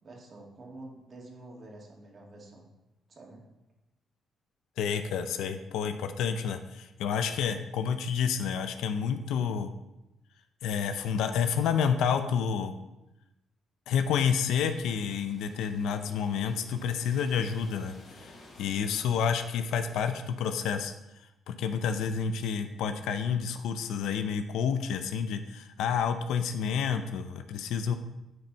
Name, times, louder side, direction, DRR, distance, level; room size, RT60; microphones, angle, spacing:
voice 1, 0.0-2.7 3.1-3.4, right 2 dB, 45° right, -1 dB, 2.1 m, -48 dB
voice 2, 4.8-9.7 10.6-12.8 13.9-20.9 21.5-27.9, left 7 dB, 85° left, 8 dB, 0.5 m, -29 dB
sound 1, 14.2-20.0, left 2 dB, 50° left, 3.1 m, -55 dB
9.5 x 4.5 x 4.1 m, 0.93 s
cardioid pair, 90°, 0 cm